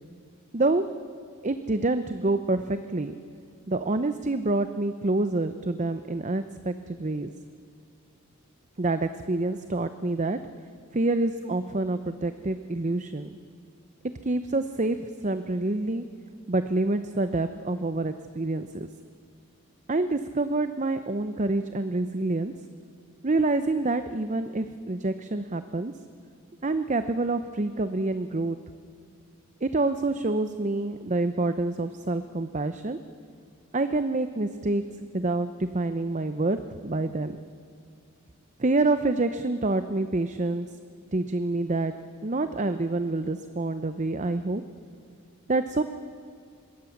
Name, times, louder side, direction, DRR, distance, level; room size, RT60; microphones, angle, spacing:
voice 1, 0.5-0.9 1.4-3.2 3.7-7.3 8.8-10.4 10.9-13.3 14.2-16.0 16.5-18.9 19.9-22.6 23.2-25.9 26.6-28.6 29.6-33.0 33.7-37.4 38.6-40.7 41.1-41.9 42.2-44.6 45.5-45.8, right 2 dB, 35° right, 10 dB, 0.7 m, -27 dB
25.5 x 21.5 x 7.2 m, 2.4 s
head